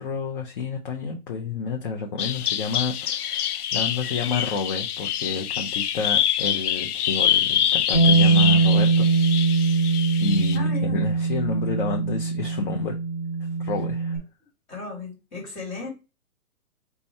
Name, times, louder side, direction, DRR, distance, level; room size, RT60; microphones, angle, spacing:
voice 1, 0.0-9.1 10.2-13.0 13.6-14.2, left 4 dB, 35° left, 0.6 m, -30 dB
Bird vocalization bird call bird song, 2.2-10.6, left 10 dB, 85° left, 0.6 m, -25 dB
Bass guitar, 7.9-14.2, right 4 dB, ahead, 0.9 m, -22 dB
voice 2, 10.5-11.0 14.7-15.9, left 4 dB, 15° left, 1.6 m, -35 dB
4.2 x 2.3 x 4.3 m
hypercardioid pair, 150°, 44 cm